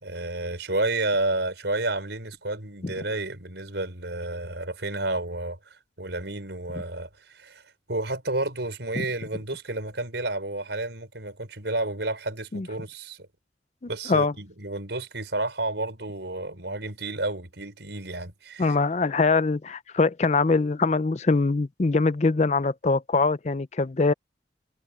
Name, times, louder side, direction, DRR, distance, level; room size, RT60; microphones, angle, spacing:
voice 1, 0.0-5.6 6.0-7.6 7.9-13.3 13.9-18.8, right 2 dB, 80° right, 5.0 m, -31 dB
voice 2, 18.6-24.1, left 3 dB, 40° left, 0.5 m, -23 dB
head